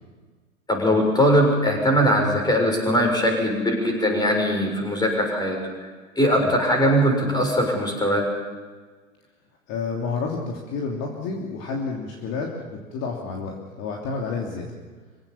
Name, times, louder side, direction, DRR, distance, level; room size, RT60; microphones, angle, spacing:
voice 1, 0.7-5.6 6.2-8.2, equal, 10° left, 1 dB, 6.8 m, -20 dB
voice 2, 9.7-14.7, left 4 dB, 35° left, 0 dB, 3.1 m, -30 dB
26.5 x 17.0 x 7.3 m, 1.4 s
figure-of-eight pair, 100°, 41 cm